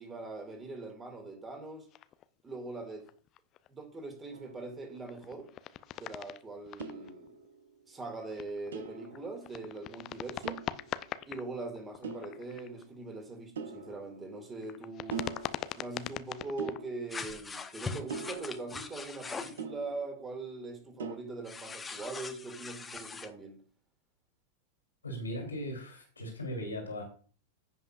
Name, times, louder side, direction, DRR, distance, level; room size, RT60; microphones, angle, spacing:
voice 1, 0.0-1.9 2.4-3.1 3.7-5.5 6.0-7.3 7.9-10.6 11.3-15.3 15.7-23.6, right 3 dB, 15° right, 2.4 m, -42 dB
sound 1, 1.9-2.4 2.8-3.7 4.6-7.5 8.1-11.5 11.7-12.8 13.7-14.0 14.6-16.8, left 12 dB, 35° left, 0.5 m, -41 dB
sound 2, 4.3-5.3 6.8-7.8 8.7-9.9 10.4-11.4 12.0-13.0 13.6-14.8 15.1-16.2 16.6-17.6 18.1-20.5 21.0-21.2, right 5 dB, 65° right, 1.0 m, -44 dB
sound 3, 17.1-19.6 21.4-23.3, left 4 dB, 15° left, 0.9 m, -41 dB
voice 2, 25.0-27.0, equal, 80° left, 2.9 m, -38 dB
15.5 x 5.6 x 2.5 m
figure-of-eight pair, 90°, 0 cm